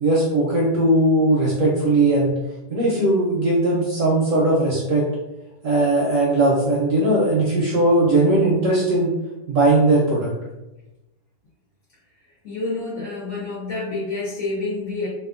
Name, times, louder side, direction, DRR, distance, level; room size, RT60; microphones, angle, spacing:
voice 1, 0.0-2.3 2.7-5.1 5.6-9.1 9.5-10.3, right 2 dB, 65° right, -4 dB, 0.8 m, -19 dB
voice 2, 12.4-15.1, left 3 dB, 60° left, -6 dB, 1.1 m, -28 dB
2.8 x 2.4 x 2.4 m, 0.98 s
omnidirectional pair, 1.7 m